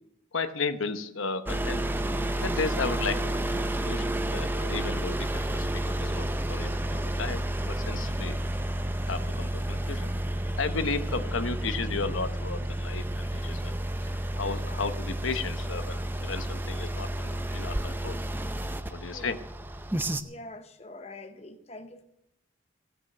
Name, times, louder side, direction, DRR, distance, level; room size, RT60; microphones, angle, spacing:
voice 1, 0.3-1.8 2.4-4.0 4.3-8.4 9.1-10.1 10.6-13.7 14.1-18.2 18.9-19.4, left 4 dB, 80° left, 10 dB, 1.0 m, -34 dB
sound 1, 1.5-20.2, right 1 dB, 10° right, 0.6 m, -31 dB
voice 2, 19.0-19.4 20.2-22.0, left 2 dB, 30° left, 7 dB, 0.8 m, -46 dB
17.0 x 6.4 x 7.8 m, 0.83 s
head